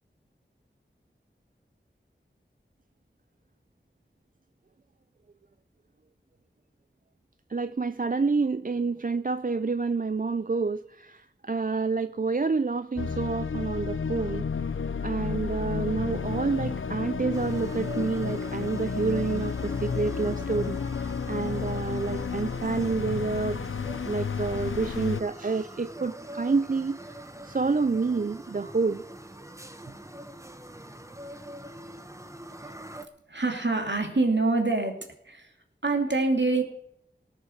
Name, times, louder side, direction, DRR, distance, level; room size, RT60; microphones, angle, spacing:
voice 1, 7.5-14.5 15.0-23.6 24.0-27.0 27.4-29.0, right 4 dB, 45° right, 12 dB, 0.5 m, -28 dB
sound 1, 13.0-25.2, left 5 dB, 85° left, 0.5 m, -32 dB
sound 2, 17.3-33.1, right 1 dB, 15° right, 1.1 m, -44 dB
voice 2, 33.3-35.0 35.2-35.5 35.8-36.6, right 3 dB, 65° right, 3 dB, 2.7 m, -25 dB
18.0 x 7.2 x 6.5 m, 0.75 s
wide cardioid pair, 45°, 20 cm